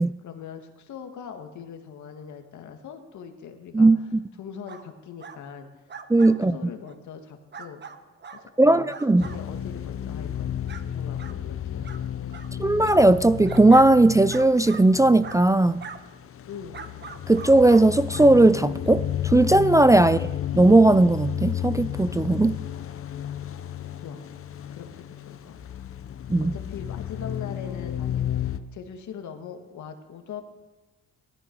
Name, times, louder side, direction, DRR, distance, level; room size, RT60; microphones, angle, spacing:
voice 1, 0.0-3.9 4.4-5.8 6.5-7.8 8.3-8.9 9.2-10.6 10.9-12.1 16.5-16.8 20.0-20.3 24.0-24.2 24.7-25.8 26.4-30.4, left 7 dB, 70° left, 5 dB, 2.1 m, -41 dB
voice 2, 3.7-4.2 6.1-6.6 8.6-9.2 12.6-15.8 17.3-20.2 20.5-22.5 26.3-26.5, right 2 dB, 10° right, 13 dB, 0.4 m, -17 dB
sound 1, 4.7-4.9 5.2-5.4 5.9-6.4 6.8-6.9 7.5-8.4 8.9-9.4 9.9-10.0 10.7-10.8 11.2-11.3 11.8-12.0 12.3-12.5 12.8-13.9 14.3-14.8 15.2-15.4 15.8-16.0 16.7-17.8 18.1-18.3 18.8-18.9, right 5 dB, 35° right, 1.2 m, -41 dB
sound 2, 9.2-28.6, left 10 dB, 45° left, 0.9 m, -33 dB
18.5 x 13.5 x 4.7 m, 1.1 s
cardioid pair, 90°, 30 cm